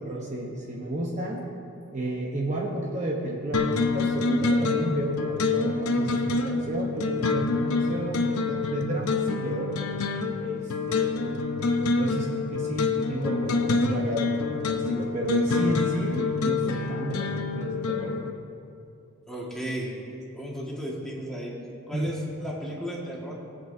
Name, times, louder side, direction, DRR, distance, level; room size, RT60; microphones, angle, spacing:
voice 1, 0.0-1.4 1.9-9.8 10.4-11.3 12.0-18.2 21.9-22.1, right 1 dB, 35° right, -3 dB, 1.0 m, -32 dB
sound 1, 3.5-18.3, left 3 dB, 80° left, 0.8 m, -27 dB
voice 2, 19.3-19.9 20.3-21.5 21.9-23.3, equal, ahead, -5 dB, 1.8 m, -34 dB
21.5 x 8.1 x 2.7 m, 2.6 s
head